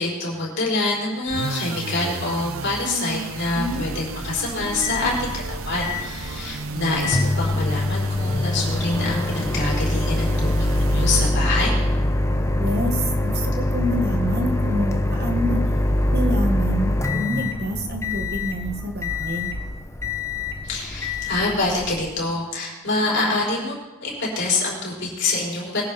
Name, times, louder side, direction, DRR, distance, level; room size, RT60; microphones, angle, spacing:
voice 1, 0.0-11.7 20.6-25.8, left 2 dB, 55° left, -4 dB, 5.0 m, -26 dB
sound 1, 1.3-11.7, right 3 dB, 65° right, 0.8 m, -33 dB
voice 2, 3.5-4.0 4.8-5.1 12.6-15.6 16.1-19.5, equal, 45° right, 4 dB, 1.6 m, -27 dB
Microwave oven, 4.2-22.2, left 1 dB, 15° left, 0.8 m, -24 dB
21.0 x 10.5 x 4.2 m, 1.1 s
head